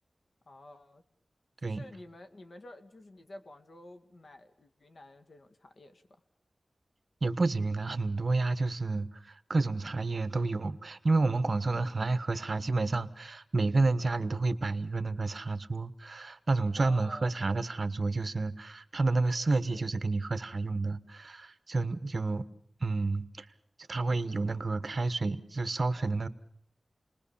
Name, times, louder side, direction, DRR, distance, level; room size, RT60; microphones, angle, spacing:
voice 1, 0.5-1.0 1.6-6.0 16.7-17.3 19.6-19.9, left 1 dB, 65° left, 7 dB, 2.1 m, -50 dB
voice 2, 7.2-22.5 22.8-23.4 23.9-26.3, right 3 dB, 55° right, 13 dB, 1.3 m, -30 dB
29.5 x 20.5 x 7.1 m, 0.64 s
wide cardioid pair, 85°, 0 cm